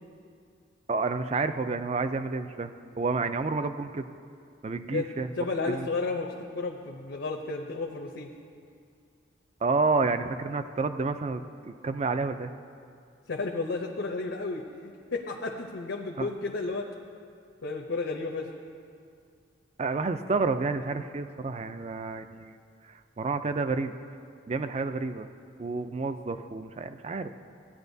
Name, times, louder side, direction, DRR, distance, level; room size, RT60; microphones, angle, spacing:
voice 1, 0.9-2.7 3.0-4.1 4.6-5.3 5.7-5.9 9.6-12.5 16.2-16.3 19.8-22.6 22.9-23.9 24.5-25.3 25.6-27.3, right 3 dB, 35° right, 10 dB, 0.4 m, -29 dB
voice 2, 5.4-8.3 13.3-16.9 17.6-18.5, left 3 dB, 80° left, 2 dB, 0.7 m, -32 dB
16.5 x 9.7 x 2.7 m, 2.4 s
head